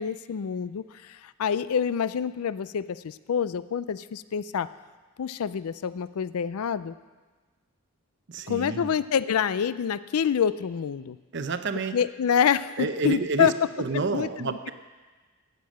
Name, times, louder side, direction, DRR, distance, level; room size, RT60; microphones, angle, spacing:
voice 1, 0.0-4.7 5.2-6.9 8.5-11.2 11.9-13.5 14.1-14.3, left 7 dB, 75° left, 16 dB, 0.4 m, -27 dB
voice 2, 8.3-8.9 11.3-12.0 12.8-13.5 13.8-14.7, right 4 dB, 50° right, 9 dB, 0.7 m, -29 dB
16.5 x 6.7 x 6.4 m, 1.3 s
head